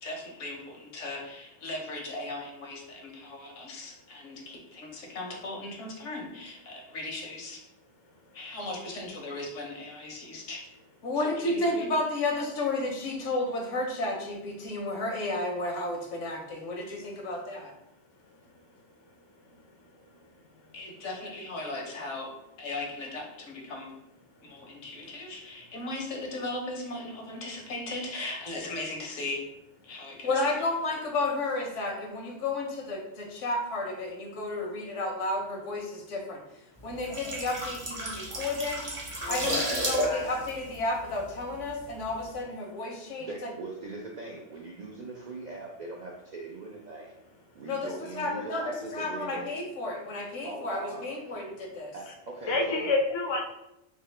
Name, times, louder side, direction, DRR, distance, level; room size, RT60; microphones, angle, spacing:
voice 1, 0.0-7.6 8.3-10.6 11.0-17.7 20.7-22.3 22.6-23.9 24.4-29.4 29.9-36.4 36.8-38.8 39.2-43.5 47.7-51.9, left 2 dB, 80° left, 2 dB, 1.1 m, -33 dB
sound 1, 36.9-41.7 42.0-42.2, equal, 30° right, 0.8 m, -32 dB
voice 2, 39.2-40.2 52.5-53.4, left 3 dB, 40° left, 2 dB, 0.4 m, -29 dB
voice 3, 43.2-47.1 47.5-49.5 50.4-51.1 51.9-52.9, right 3 dB, 65° right, -1 dB, 0.4 m, -41 dB
3.6 x 2.8 x 3.2 m, 0.86 s
omnidirectional pair, 1.2 m